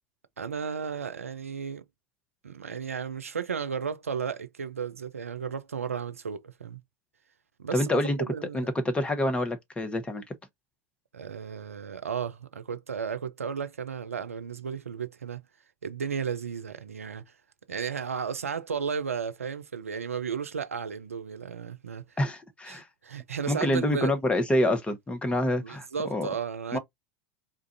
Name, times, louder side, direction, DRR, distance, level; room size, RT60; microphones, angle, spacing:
voice 1, 0.4-1.8 2.4-6.8 7.6-8.7 11.1-15.4 15.8-17.3 17.7-22.2 22.7-24.1 25.3-26.8, right 6 dB, 90° right, 0.5 m, -34 dB
voice 2, 7.7-8.2 8.5-10.2 22.2-22.9 23.5-26.3 26.7-26.8, left 1 dB, 15° left, 1.0 m, -27 dB
3.8 x 2.5 x 2.6 m
hypercardioid pair, 80°, 7 cm